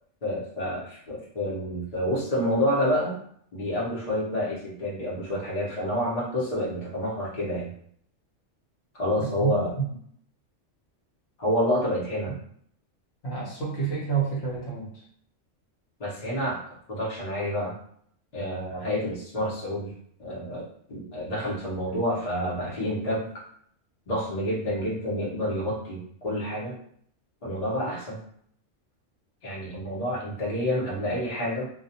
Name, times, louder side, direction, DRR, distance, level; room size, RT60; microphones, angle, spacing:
voice 1, 0.2-3.2 3.5-7.7 8.9-9.7 11.4-12.3 16.0-16.6 16.9-17.7 18.3-19.9 20.2-23.3 24.1-26.8 27.4-28.2 29.4-31.7, equal, 35° left, -6 dB, 0.8 m, -28 dB
voice 2, 9.2-9.9 13.2-15.0, right 6 dB, 60° left, -5 dB, 1.0 m, -29 dB
2.3 x 2.2 x 2.7 m, 0.64 s
omnidirectional pair, 1.3 m